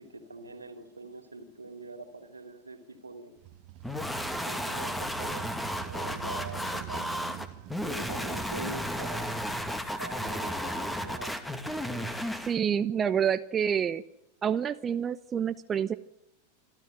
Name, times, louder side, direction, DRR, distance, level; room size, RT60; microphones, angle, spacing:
voice 1, 0.0-3.3 4.4-7.3 7.8-9.3 10.0-11.4, right 3 dB, 80° right, 8 dB, 3.0 m, -44 dB
Motorcycle, 3.4-10.1, right 14 dB, 45° right, 1.4 m, -45 dB
sound 1, 3.8-12.5, equal, 5° left, 2.2 m, -33 dB
voice 2, 12.4-14.0 14.4-16.0, right 8 dB, 20° right, 11 dB, 0.8 m, -28 dB
26.5 x 13.5 x 9.2 m, 0.87 s
figure-of-eight pair, 90°, 0 cm